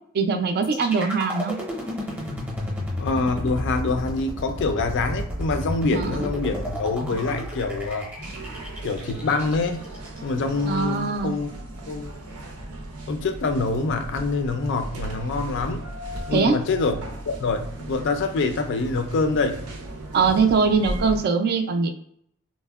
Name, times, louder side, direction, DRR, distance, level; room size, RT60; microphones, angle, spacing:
voice 1, 0.1-1.6 5.9-6.3 10.6-11.3 16.3-16.6 20.1-21.9, right 5 dB, 45° right, 6 dB, 0.3 m, -22 dB
sound 1, 0.6-10.6, equal, 10° right, 0.7 m, -32 dB
voice 2, 3.0-8.1 8.8-9.8 10.2-11.5 11.9-12.1 13.1-15.8 16.3-19.7, left 3 dB, 55° left, 7 dB, 0.4 m, -25 dB
sound 2, 8.2-21.2, right 1 dB, 90° right, 0.6 m, -36 dB
3.4 x 2.0 x 2.3 m, 0.69 s
head